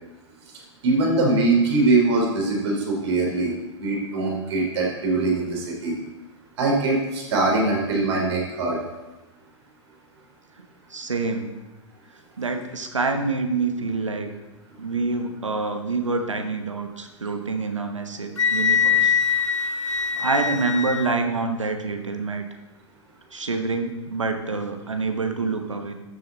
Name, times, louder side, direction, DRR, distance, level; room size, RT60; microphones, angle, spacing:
voice 1, 0.8-3.5 3.8-5.9 6.6-8.8, right 2 dB, 65° right, -1 dB, 3.5 m, -22 dB
voice 2, 10.9-11.5 12.4-14.3 14.8-19.2 19.9-22.4 23.3-25.9, right 3 dB, 85° right, 6 dB, 1.2 m, -27 dB
Wind instrument woodwind instrument, 18.4-21.2, left 6 dB, 85° left, 0.5 m, -22 dB
12.5 x 6.8 x 4.1 m, 1.1 s
figure-of-eight pair, 100°, 15 cm